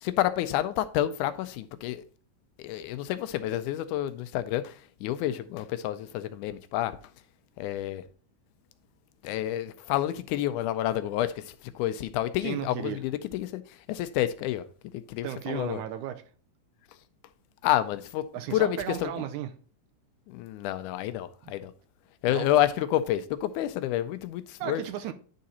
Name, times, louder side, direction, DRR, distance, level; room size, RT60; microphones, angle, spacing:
voice 1, 0.0-2.0 2.6-7.0 7.6-8.0 9.2-13.6 13.9-14.6 14.9-15.8 17.6-19.1 20.3-21.7 22.2-24.8, left 13 dB, 85° left, 2.0 m, -29 dB
voice 2, 12.4-13.0 15.2-16.2 18.3-19.5 21.4-21.5 22.3-22.5 24.6-25.1, right 11 dB, 85° right, 2.1 m, -34 dB
9.3 x 3.8 x 4.1 m
omnidirectional pair, 3.5 m